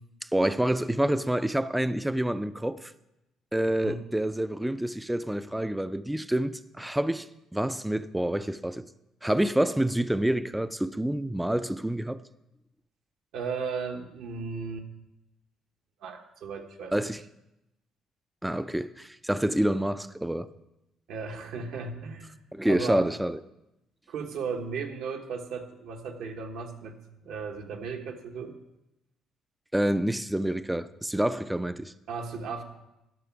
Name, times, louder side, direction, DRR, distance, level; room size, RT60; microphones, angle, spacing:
voice 1, 0.2-2.9 3.5-7.3 7.5-8.9 9.2-12.2 16.9-17.2 18.4-20.5 22.5-23.4 29.7-31.9, right 1 dB, 5° right, 0.3 m, -27 dB
voice 2, 3.7-4.0 13.3-14.8 16.0-17.1 21.1-23.1 24.1-27.0 27.2-28.6 32.1-32.6, right 5 dB, 75° right, 1.2 m, -36 dB
12.5 x 6.0 x 5.9 m
cardioid pair, 115°, 0 cm